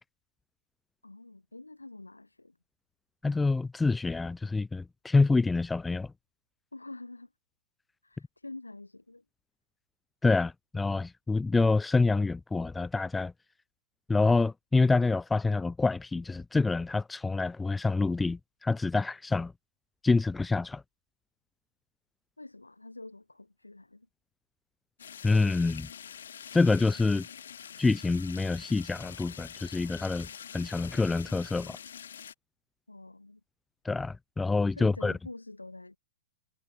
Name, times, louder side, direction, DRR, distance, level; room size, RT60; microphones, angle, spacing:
voice 1, 1.0-2.5 6.7-7.3 8.0-9.2 22.4-24.1 32.9-33.4 34.7-36.0, left 2 dB, 90° left, 0.8 m, -46 dB
voice 2, 3.2-6.1 10.2-13.3 14.1-19.5 20.0-20.8 25.2-25.9 26.5-27.3 27.8-30.3 30.5-31.8 33.8-35.1, left 3 dB, 10° left, 0.4 m, -27 dB
sound 1, 25.0-32.3, left 8 dB, 65° left, 1.3 m, -46 dB
figure-of-eight pair, 110°, 0 cm